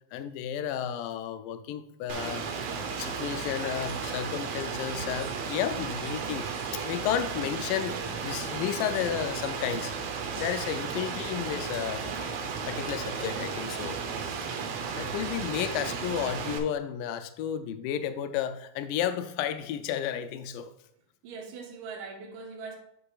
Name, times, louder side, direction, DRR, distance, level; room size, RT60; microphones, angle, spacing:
voice 1, 0.1-2.7 3.0-6.5 6.7-8.0 8.2-9.9 10.3-12.0 12.7-14.0 15.0-20.7, left 9 dB, 90° left, 1.9 m, -32 dB
Rain, 2.1-16.6, right 5 dB, 85° right, 1.5 m, -34 dB
voice 2, 14.0-14.7 21.2-22.8, right 4 dB, 65° right, 2.2 m, -42 dB
9.9 x 6.7 x 2.4 m
omnidirectional pair, 4.4 m